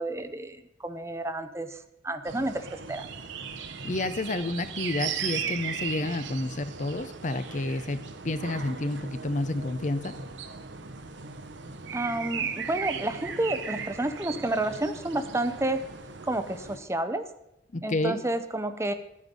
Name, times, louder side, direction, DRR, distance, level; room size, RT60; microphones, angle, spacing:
voice 1, 0.0-1.7 2.0-3.1 11.9-15.8 16.3-17.2 17.8-18.9, right 1 dB, 15° right, 10 dB, 0.7 m, -30 dB
sound 1, 2.3-16.8, right 6 dB, 75° right, 1.0 m, -37 dB
voice 2, 3.8-8.0 8.2-10.1 17.7-18.2, left 2 dB, 40° left, 12 dB, 0.7 m, -30 dB
12.5 x 9.8 x 5.3 m, 0.86 s
head